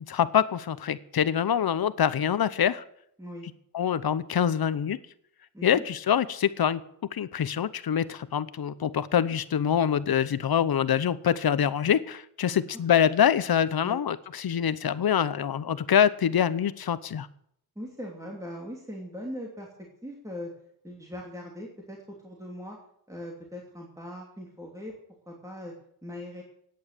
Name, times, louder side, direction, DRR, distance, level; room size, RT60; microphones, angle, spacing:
voice 1, 0.1-2.8 3.7-5.0 5.6-6.8 7.1-17.3, left 8 dB, 75° left, 15 dB, 0.9 m, -25 dB
voice 2, 17.7-19.7 20.0-20.5 20.8-22.0 22.2-22.8 23.1-24.9 25.3-25.7 26.0-26.4, equal, 10° right, -1 dB, 2.9 m, -40 dB
17.0 x 9.6 x 6.7 m, 0.68 s
wide cardioid pair, 155°, 37 cm